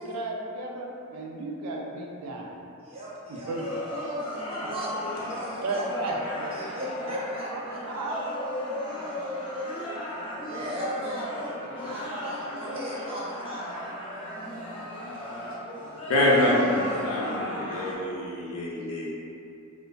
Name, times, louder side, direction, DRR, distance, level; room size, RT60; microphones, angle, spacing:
voice 1, 0.0-2.6 3.3-3.6 5.6-6.7 7.0-7.1 7.9-8.2, right 2 dB, 90° right, -1 dB, 0.3 m, -34 dB
voice 2, 2.8-5.8 6.5-7.8 9.7-13.7, equal, 25° right, -8 dB, 0.5 m, -38 dB
sound 1, 3.5-17.9, left 1 dB, 25° left, 0.5 m, -35 dB
voice 3, 16.1-19.1, left 1 dB, 80° left, -4 dB, 0.4 m, -25 dB
2.4 x 2.2 x 2.3 m, 2.7 s
head